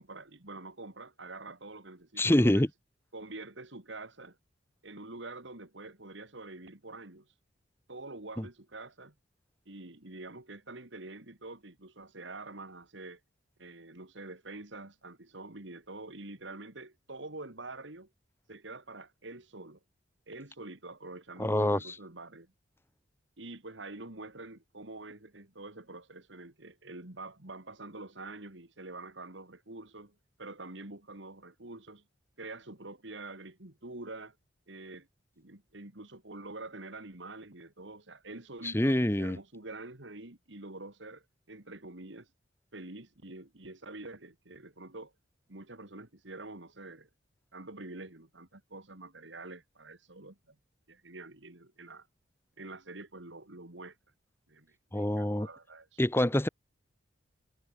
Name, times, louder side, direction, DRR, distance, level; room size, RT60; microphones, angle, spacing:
voice 1, 0.0-2.7 3.1-4.4 4.8-7.3 7.9-9.1 9.7-13.2 13.6-18.1 18.5-19.8 20.3-22.5 23.4-32.0 32.4-34.4 34.7-35.1 35.4-42.3 42.7-45.1 45.5-47.1 47.5-50.6 50.9-52.1 52.6-54.0 54.5-56.0, right 2 dB, 70° right, 2.7 m, -46 dB
voice 2, 2.2-2.7 8.4-8.5 21.4-21.9 38.6-39.4 54.9-55.5 56.0-56.5, left 1 dB, 10° left, 0.9 m, -26 dB
head